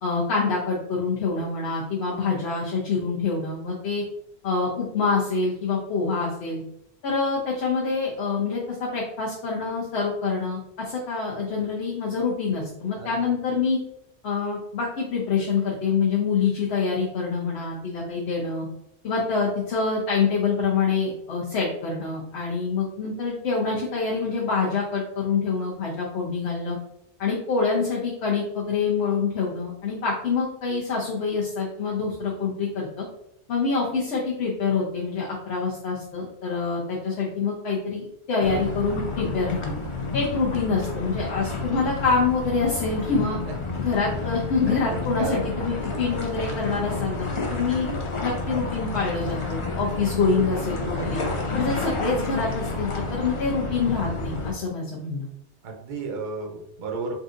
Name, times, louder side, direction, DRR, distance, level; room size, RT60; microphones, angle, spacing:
voice 1, 0.0-4.0 4.4-6.6 7.0-13.8 14.2-18.7 19.0-26.8 27.2-33.1 33.5-39.7 40.1-43.4 43.8-47.9 48.2-51.2 51.5-55.3, left 4 dB, 70° left, -3 dB, 0.9 m, -26 dB
voice 2, 12.9-13.3 43.5-43.6 44.6-45.6 55.6-57.1, right 4 dB, 55° right, 2 dB, 0.7 m, -33 dB
sound 1, 38.4-54.5, left 3 dB, 45° left, 0.4 m, -30 dB
3.7 x 2.6 x 2.4 m, 0.80 s
omnidirectional pair, 1.2 m